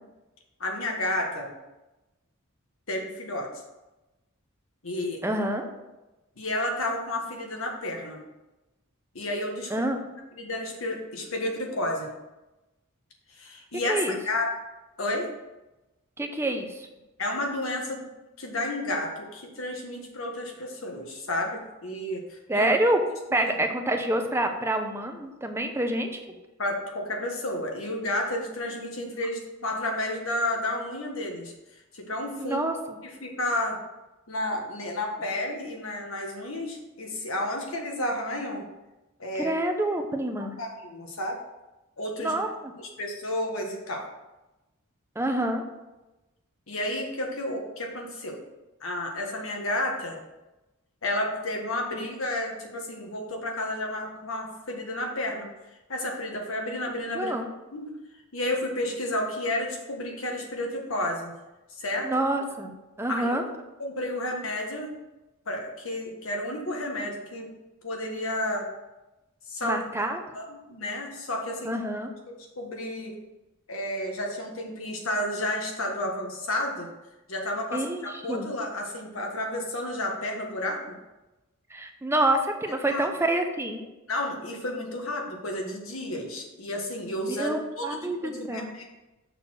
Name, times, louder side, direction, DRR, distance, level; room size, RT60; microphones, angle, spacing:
voice 1, 0.6-1.5 2.9-3.5 4.8-5.2 6.4-8.2 9.1-9.9 10.4-12.1 13.3-14.5 15.0-15.3 17.2-18.1 18.4-22.7 23.3-23.5 26.6-31.5 31.9-32.6 33.0-33.8 34.3-38.6 39.2-39.5 40.6-41.4 42.0-42.4 42.8-44.0 46.7-48.4 48.8-50.2 51.0-55.5 55.9-57.3 57.7-57.9 58.3-61.3 61.8-62.1 63.1-63.4 63.8-64.9 65.5-67.5 67.8-68.7 69.5-69.8 70.3-71.7 72.6-73.2 73.7-76.9 77.3-80.9 82.9-83.1 84.1-88.8, left 1 dB, 70° left, 1 dB, 1.5 m, -31 dB
voice 2, 5.2-5.7 9.7-10.0 13.9-14.2 16.2-16.9 22.5-23.0 23.3-26.2 32.4-33.0 39.3-40.5 42.2-42.7 45.2-45.6 51.9-52.0 57.1-57.5 62.0-62.7 63.0-63.4 69.6-70.2 71.6-72.1 77.7-78.5 81.7-83.9 87.3-88.7, right 1 dB, 10° right, 4 dB, 0.7 m, -27 dB
6.6 x 4.2 x 6.4 m, 1.0 s
head